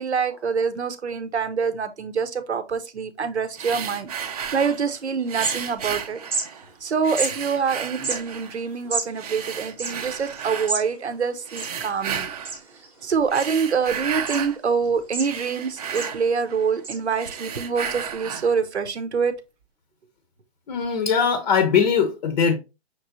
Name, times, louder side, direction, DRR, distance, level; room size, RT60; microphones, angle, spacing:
voice 1, 0.0-4.1 4.5-6.2 6.8-12.3 13.0-19.3, right 6 dB, 85° right, 0.8 m, -25 dB
sound 1, 3.6-4.9 5.3-6.7 7.0-8.6 9.2-10.8 11.5-12.6 13.2-14.6 15.0-16.8 17.1-18.6, right 7 dB, 35° right, 0.5 m, -33 dB
sound 2, 4.8-4.9 5.2-6.0 6.2-6.5 7.2-7.3 7.9-10.9 11.2-11.3 11.5-12.1 12.4-12.9 13.3-13.8 14.3-14.4 14.8-15.6 15.9-16.1 16.8-17.0, right 3 dB, 5° right, 0.8 m, -30 dB
voice 2, 20.7-22.6, left 6 dB, 45° left, 0.7 m, -20 dB
5.8 x 3.1 x 2.6 m
hypercardioid pair, 140°, 32 cm